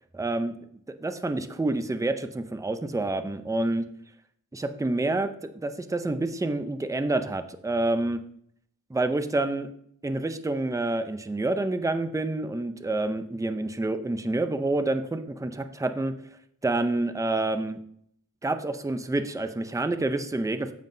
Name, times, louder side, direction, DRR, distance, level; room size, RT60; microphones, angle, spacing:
voice 1, 0.2-0.5 1.0-3.8 4.5-8.2 8.9-9.7 10.0-16.1 16.6-17.8 18.4-20.7, right 2 dB, 10° right, 9 dB, 0.5 m, -28 dB
9.2 x 7.2 x 2.7 m, 0.67 s
wide cardioid pair, 105°, 32 cm